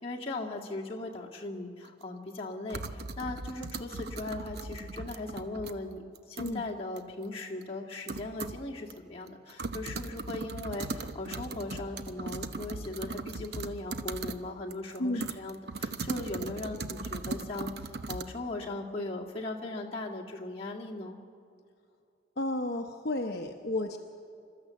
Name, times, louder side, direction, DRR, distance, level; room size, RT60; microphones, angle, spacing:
voice 1, 0.0-21.2, left 2 dB, 30° left, -2 dB, 2.0 m, -38 dB
sound 1, 1.8-1.9 2.7-5.7 6.1-6.6 7.0-7.1 7.6-7.7 8.1-8.6 8.9-9.0 9.3-14.4 14.7-18.2, right 3 dB, 55° right, 0.8 m, -38 dB
voice 2, 22.4-24.0, left 1 dB, 55° left, 3 dB, 0.9 m, -32 dB
28.0 x 13.0 x 7.6 m, 2.4 s
head